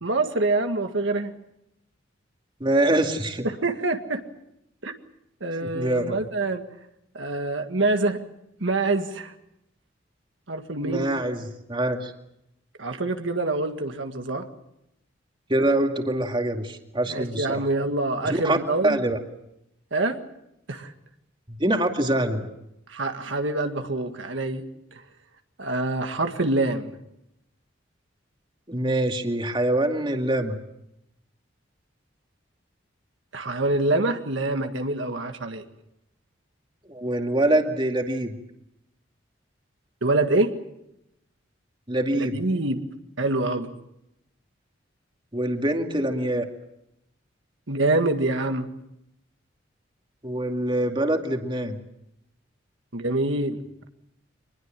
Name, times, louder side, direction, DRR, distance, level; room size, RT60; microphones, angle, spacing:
voice 1, 0.0-1.3 3.4-4.2 4.8-4.9 5.4-6.6 7.1-8.2 8.6-9.3 10.5-11.1 12.8-14.5 17.1-19.0 19.9-20.2 20.7-20.9 22.9-24.6 25.6-26.9 33.3-35.6 40.0-40.5 42.1-42.8 43.2-43.7 47.7-48.7 52.9-53.6, right 2 dB, 80° right, 6 dB, 1.8 m, -25 dB
voice 2, 2.6-3.5 5.5-6.2 10.8-12.1 15.5-17.7 18.3-18.6 18.8-19.2 21.5-22.5 28.7-30.6 36.9-38.3 41.9-42.4 45.3-46.5 50.2-51.8, right 1 dB, 25° right, 4 dB, 2.3 m, -24 dB
25.0 x 21.0 x 7.5 m, 0.81 s
head